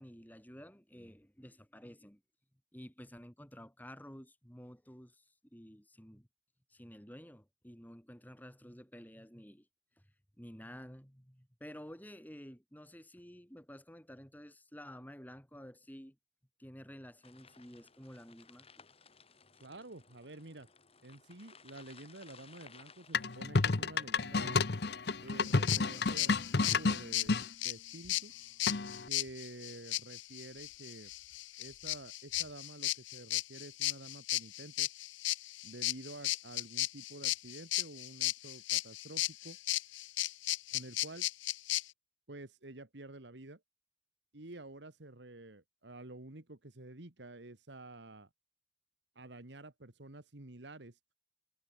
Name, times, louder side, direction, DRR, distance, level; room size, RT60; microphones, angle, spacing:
voice 1, 0.0-2.2 2.7-6.3 6.7-9.7 10.0-10.1 10.4-16.2 16.6-18.9, equal, 10° left, 5.4 m, -52 dB
sound 1, 17.2-26.8, left 5 dB, 30° left, 5.0 m, -60 dB
voice 2, 19.6-20.7 21.0-24.6 25.2-28.3 29.1-31.1 31.6-34.9 35.6-39.6 40.7-41.3 42.3-43.6 44.3-48.3 49.2-51.0, right 2 dB, 65° right, 1.8 m, -50 dB
sound 2, 23.1-27.5 28.7-29.1, left 3 dB, 60° left, 0.9 m, -31 dB
sound 3, 25.4-41.8, left 17 dB, 75° left, 0.5 m, -35 dB
head